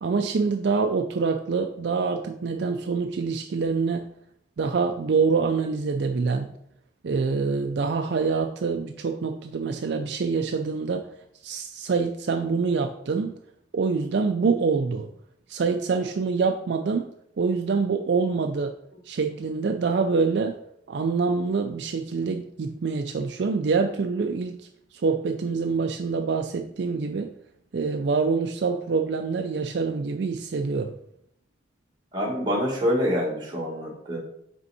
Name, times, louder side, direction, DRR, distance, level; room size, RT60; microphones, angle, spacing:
voice 1, 0.0-4.1 4.6-6.5 7.0-11.1 11.4-13.4 13.7-15.1 15.5-17.1 17.4-18.7 19.0-20.6 20.9-27.3 27.7-30.9, right 4 dB, 60° right, 5 dB, 0.4 m, -25 dB
voice 2, 32.1-34.2, equal, 20° right, -4 dB, 1.6 m, -26 dB
5.3 x 4.4 x 4.1 m, 0.73 s
head